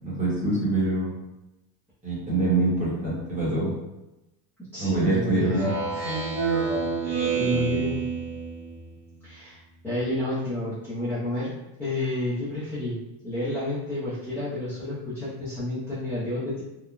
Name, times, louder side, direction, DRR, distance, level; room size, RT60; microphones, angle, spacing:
voice 1, 0.0-1.1 2.0-3.7 4.8-5.7, right 2 dB, 15° right, -7 dB, 0.8 m, -25 dB
voice 2, 4.7-5.5 7.3-8.0 9.2-9.6 9.8-11.5 11.8-13.0 13.2-16.6, left 2 dB, 5° left, -14 dB, 0.5 m, -30 dB
Speech synthesizer, 5.4-8.9, right 5 dB, 55° right, 0.7 m, -27 dB
3.2 x 2.0 x 2.3 m, 0.96 s
cardioid pair, 155°, 49 cm